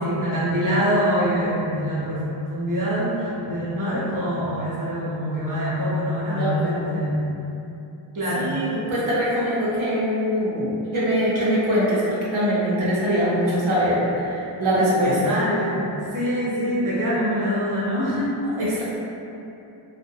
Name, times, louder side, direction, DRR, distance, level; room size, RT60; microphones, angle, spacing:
voice 1, 0.0-7.3 8.1-8.5 15.2-18.4, equal, 40° right, -8 dB, 0.8 m, -24 dB
voice 2, 6.3-7.0 8.4-15.3 18.6-18.8, equal, 75° right, -9 dB, 0.7 m, -23 dB
2.5 x 2.1 x 2.7 m, 2.8 s
cardioid pair, 50°, 49 cm